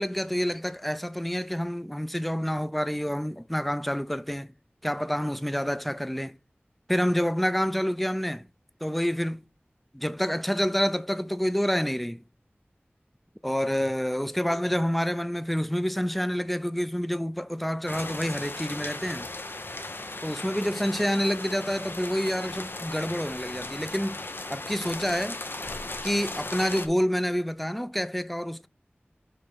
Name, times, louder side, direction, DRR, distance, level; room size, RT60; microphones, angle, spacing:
voice 1, 0.0-4.5 4.8-6.4 6.9-8.5 8.8-9.4 9.9-12.2 13.4-19.3 20.2-24.2 24.5-25.4 26.0-28.7, equal, ahead, 0.4 m, -28 dB
sound 1, 17.9-26.9, left 2 dB, 65° left, 0.8 m, -37 dB
5.2 x 3.5 x 5.7 m
wide cardioid pair, 45°, 4 cm